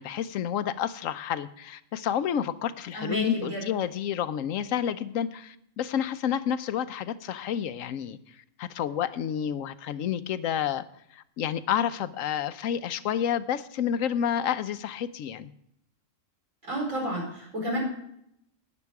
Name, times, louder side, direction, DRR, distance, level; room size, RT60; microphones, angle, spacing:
voice 1, 0.0-10.8 11.1-15.5, left 9 dB, 85° left, 14 dB, 1.0 m, -30 dB
voice 2, 2.9-3.6 16.7-17.8, equal, 80° right, -3 dB, 5.5 m, -30 dB
12.5 x 9.6 x 4.7 m, 0.74 s
omnidirectional pair, 1.4 m